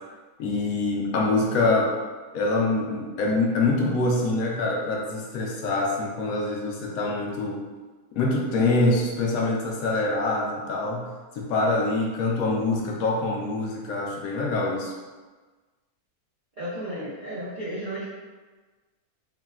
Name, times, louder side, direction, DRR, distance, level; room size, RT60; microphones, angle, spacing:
voice 1, 0.4-1.9 2.3-7.6 8.2-11.1 11.4-14.9, left 2 dB, 70° left, -1 dB, 1.0 m, -25 dB
voice 2, 16.5-18.0, right 1 dB, 70° right, -9 dB, 0.4 m, -33 dB
3.7 x 2.1 x 2.3 m, 1.3 s
omnidirectional pair, 1.6 m